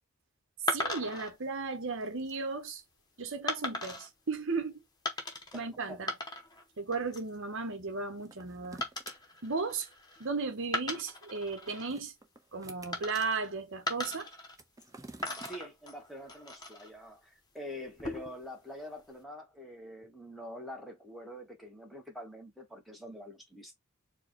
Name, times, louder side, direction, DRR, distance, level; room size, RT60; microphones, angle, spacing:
sound 1, 0.7-1.3 2.0-2.3 3.5-4.1 5.0-5.6 5.9-6.6 6.9-7.3 8.8-10.3 10.6-11.9 12.9-13.5 13.9-14.9 15.2-16.9 17.8-18.5, left 1 dB, 20° left, 1.0 m, -38 dB
voice 1, 0.7-2.8 3.2-4.8 5.5-6.1 6.8-8.8 9.4-9.9 10.2-12.1 12.5-14.3, right 4 dB, 55° right, 1.0 m, -35 dB
voice 2, 5.5-6.1 15.4-23.7, left 1 dB, ahead, 1.3 m, -46 dB
sound 2, 8.2-9.2 11.4-12.9 14.5-15.5, right 2 dB, 15° right, 0.6 m, -50 dB
4.6 x 2.3 x 4.4 m
head